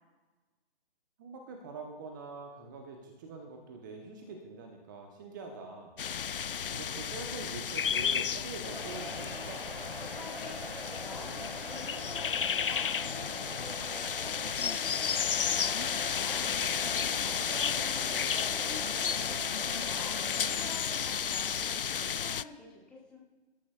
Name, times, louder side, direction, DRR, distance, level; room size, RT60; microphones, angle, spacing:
voice 1, 1.2-6.0 6.7-9.7 17.5-17.6, right 4 dB, 20° right, 3 dB, 1.0 m, -44 dB
sound 1, 6.0-22.4, left 7 dB, 55° left, 0.4 m, -33 dB
sound 2, 8.6-20.7, equal, 80° right, 3.5 m, -43 dB
voice 2, 10.1-20.2 20.5-23.2, left 3 dB, 5° left, -4 dB, 1.2 m, -48 dB
25.0 x 13.0 x 2.4 m, 1.2 s
figure-of-eight pair, 140°, 32 cm